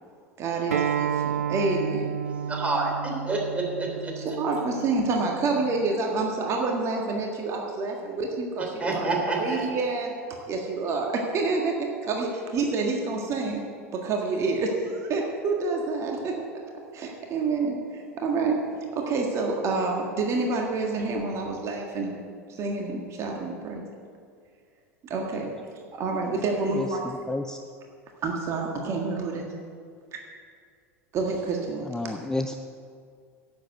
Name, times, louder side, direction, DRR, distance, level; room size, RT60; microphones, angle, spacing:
voice 1, 0.4-2.1 4.2-10.1 10.5-11.8 12.1-13.6 13.9-16.4 16.9-18.6 18.9-22.2 22.5-23.8 25.0-25.5 25.9-27.2 28.2-29.5 31.1-31.9, right 3 dB, 35° right, 0 dB, 1.8 m, -28 dB
Acoustic guitar, 0.7-5.9, right 8 dB, 80° right, 0.4 m, -31 dB
voice 2, 2.3-4.1 8.8-9.7, right 2 dB, 15° right, 0 dB, 3.5 m, -28 dB
voice 3, 26.7-27.6 31.9-32.6, left 2 dB, 5° left, 7 dB, 0.5 m, -31 dB
11.0 x 7.9 x 7.9 m, 2.2 s
figure-of-eight pair, 80°, 8 cm